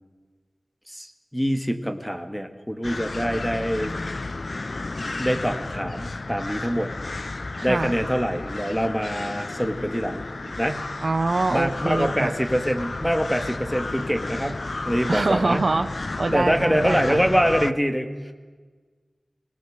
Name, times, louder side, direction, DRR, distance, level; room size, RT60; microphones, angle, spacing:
voice 1, 0.9-4.3 5.2-6.9 7.6-10.2 10.6-11.0 11.5-15.7 16.3-18.3, equal, 5° left, 7 dB, 2.1 m, -25 dB
sound 1, 2.8-17.7, left 2 dB, 55° left, 0.7 m, -32 dB
voice 2, 7.6-7.9 11.0-12.3 15.1-15.9 16.2-17.2, right 3 dB, 60° right, 10 dB, 1.0 m, -24 dB
24.0 x 19.5 x 7.9 m, 1.4 s
wide cardioid pair, 55°, 0 cm